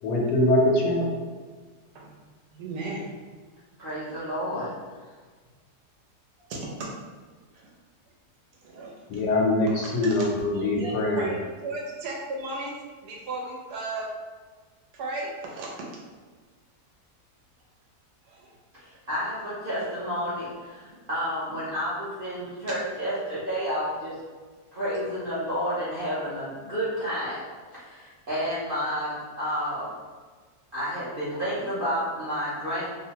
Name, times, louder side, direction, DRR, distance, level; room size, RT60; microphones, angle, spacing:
voice 1, 0.0-1.1 9.1-11.3, left 1 dB, 85° left, -1 dB, 1.2 m, -23 dB
voice 2, 2.5-3.1 6.5-6.9 7.5-7.7 8.6-9.2 9.8-10.3 10.5-12.7 13.0-14.1 14.9-15.8 18.3-18.5, right 2 dB, 80° right, -2 dB, 1.2 m, -35 dB
voice 3, 3.8-4.7 18.8-24.1 24.7-27.4 27.7-29.9 30.7-32.8, equal, 55° right, -11 dB, 0.6 m, -30 dB
3.0 x 2.1 x 2.7 m, 1.5 s
omnidirectional pair, 1.7 m